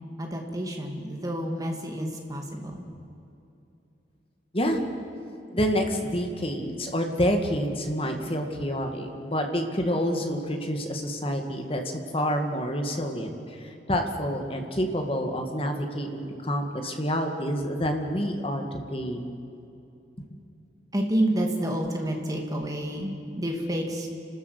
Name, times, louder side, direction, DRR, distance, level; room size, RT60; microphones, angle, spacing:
voice 1, 0.2-2.9 20.9-24.1, right 1 dB, 20° right, 2 dB, 2.5 m, -29 dB
voice 2, 5.5-11.8 12.1-19.3, equal, 30° left, 4 dB, 2.0 m, -28 dB
30.0 x 13.0 x 8.4 m, 2.7 s
head